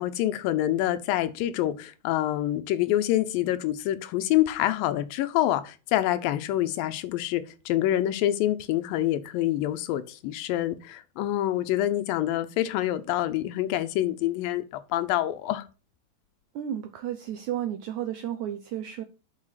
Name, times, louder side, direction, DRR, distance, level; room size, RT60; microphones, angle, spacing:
voice 1, 0.0-15.7, left 13 dB, 80° left, 2.4 m, -26 dB
voice 2, 16.5-19.0, right 10 dB, 85° right, 1.6 m, -32 dB
6.3 x 5.7 x 5.7 m
omnidirectional pair, 4.2 m